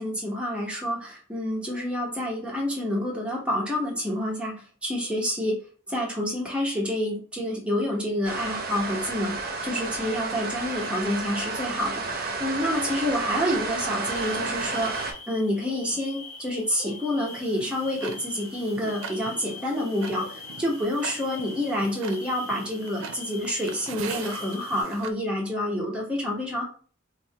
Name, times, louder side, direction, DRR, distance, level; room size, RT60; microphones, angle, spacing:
voice 1, 0.0-5.6 5.9-26.6, left 1 dB, 5° right, -3 dB, 0.9 m, -28 dB
sound 1, 8.2-15.1, right 3 dB, 45° right, 0.6 m, -31 dB
sound 2, 14.1-24.8, left 4 dB, 35° left, 0.5 m, -43 dB
Tick-tock, 17.3-25.1, right 6 dB, 90° right, 0.4 m, -42 dB
4.2 x 2.2 x 2.8 m, 0.42 s
head